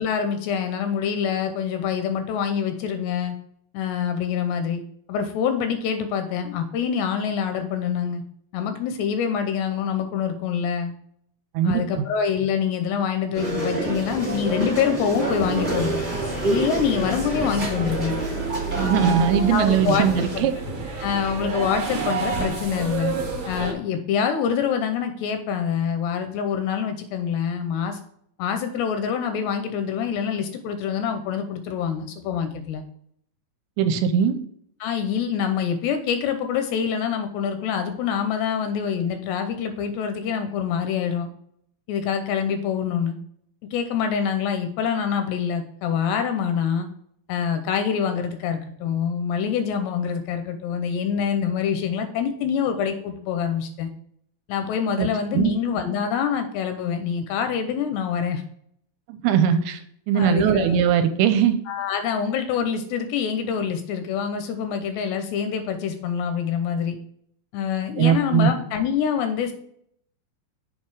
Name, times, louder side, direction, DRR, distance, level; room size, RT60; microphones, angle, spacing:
voice 1, 0.0-3.4 3.7-4.8 5.1-8.2 8.5-10.9 11.6-16.0 16.4-18.2 19.5-20.5 21.0-23.1 23.5-28.0 28.4-32.8 34.8-41.3 41.9-43.2 43.7-46.9 47.3-53.9 54.5-58.4 60.2-60.8 61.7-67.0 67.5-69.5, left 7 dB, 80° left, 7 dB, 2.6 m, -25 dB
voice 2, 11.5-12.1 18.8-20.5 33.8-34.4 55.0-55.1 55.3-55.6 59.1-59.8 60.1-61.6 68.0-68.5, right 8 dB, 85° right, 9 dB, 2.7 m, -20 dB
sound 1, 13.3-20.4, right 3 dB, 30° right, 0.8 m, -28 dB
sound 2, 15.3-23.7, right 3 dB, 55° right, 1.7 m, -31 dB
7.4 x 4.6 x 4.8 m, 0.68 s
omnidirectional pair, 5.2 m